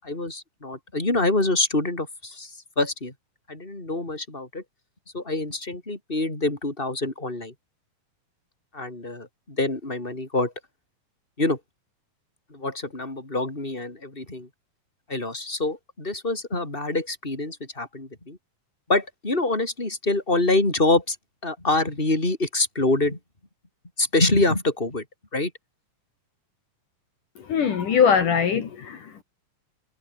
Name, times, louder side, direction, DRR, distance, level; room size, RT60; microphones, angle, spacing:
voice 1, 0.0-3.1 3.5-4.6 5.1-7.5 8.7-10.5 11.4-11.6 12.5-14.5 15.1-18.4 18.9-21.2 21.4-23.2 24.0-25.0 25.3-25.5, left 2 dB, 15° left, 5.9 m, -25 dB
voice 2, 27.4-29.2, left 7 dB, 65° left, 3.9 m, -22 dB
omnidirectional pair, 4.1 m